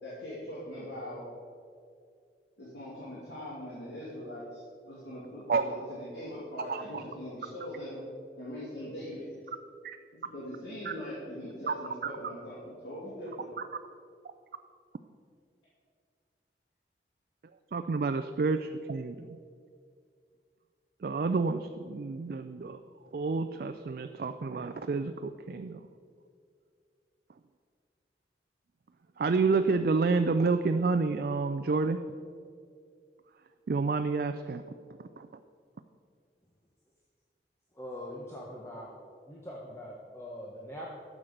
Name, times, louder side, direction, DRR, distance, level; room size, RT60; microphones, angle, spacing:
voice 1, 0.0-1.2 2.6-8.0 8.4-9.4 10.1-12.5 12.8-13.5, equal, 85° left, -8 dB, 2.6 m, -41 dB
voice 2, 6.7-7.0 9.8-10.0 11.7-11.8 12.0-12.1 17.7-19.4 21.0-22.8 23.1-25.8 29.2-32.0 33.7-34.6 35.2-35.3, right 4 dB, 55° right, 8 dB, 0.4 m, -29 dB
voice 3, 37.7-38.9 39.3-40.9, equal, 15° left, -4 dB, 1.1 m, -42 dB
12.0 x 7.4 x 5.1 m, 2.2 s
head